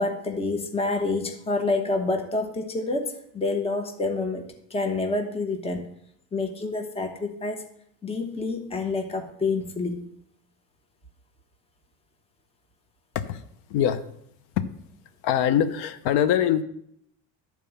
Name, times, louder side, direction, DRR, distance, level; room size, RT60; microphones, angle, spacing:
voice 1, 0.0-5.9 6.3-7.6 8.0-10.0, left 3 dB, 15° left, 5 dB, 1.1 m, -28 dB
voice 2, 13.7-14.0 14.6-14.7 15.2-16.6, left 9 dB, 75° left, 12 dB, 0.9 m, -23 dB
11.5 x 4.6 x 7.0 m, 0.72 s
cardioid pair, 125°, 39 cm